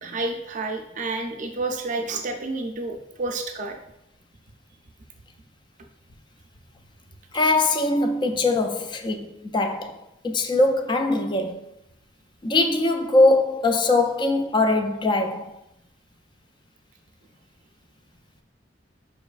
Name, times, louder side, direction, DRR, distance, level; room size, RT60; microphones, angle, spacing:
voice 1, 0.0-3.8, right 3 dB, 45° right, 0.5 m, -30 dB
voice 2, 7.3-11.7 12.4-15.5, left 2 dB, 25° left, 0.3 m, -22 dB
4.6 x 3.0 x 2.4 m
head